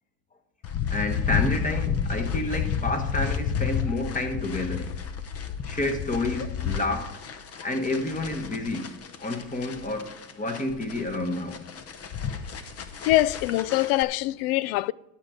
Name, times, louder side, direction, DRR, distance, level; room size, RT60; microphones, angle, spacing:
sound 1, 0.6-14.0, left 7 dB, 35° left, 0.9 m, -31 dB
voice 1, 0.9-5.0 5.7-7.2 7.6-11.6, left 2 dB, 20° left, 1.4 m, -30 dB
voice 2, 13.0-14.9, left 16 dB, 75° left, 0.5 m, -23 dB
11.5 x 6.4 x 5.1 m
supercardioid pair, 110°, 43 cm